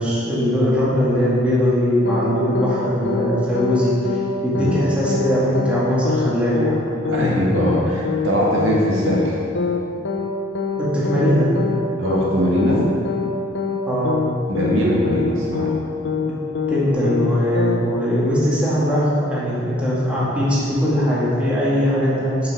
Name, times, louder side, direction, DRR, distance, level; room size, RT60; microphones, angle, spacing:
voice 1, 0.0-6.8 10.8-11.5 13.9-14.2 16.7-22.4, equal, 5° right, -9 dB, 2.0 m, -20 dB
sound 1, 2.1-2.3 2.6-2.8 3.1-3.3 3.6-3.8 4.1-4.3 4.6-4.8 5.1-5.3 5.6-5.8 6.1-6.3 6.6-6.8 7.1-7.3 7.6-7.8 8.1-8.3 8.6-8.8 9.1-9.3 9.6-9.8 10.1-10.3 10.6-10.8 11.1-11.3 11.6-11.8 12.1-12.3 12.6-12.8 13.1-13.3 13.6-13.8 14.1-14.3 14.6-14.8 15.1-15.3 15.6-16.3 16.6-16.8 17.1-17.3 17.6-17.8, left 5 dB, 65° left, 0.7 m, -24 dB
voice 2, 7.1-9.4 12.0-12.9 14.5-15.7, equal, 75° right, -4 dB, 1.9 m, -20 dB
7.3 x 5.9 x 6.0 m, 2.5 s
head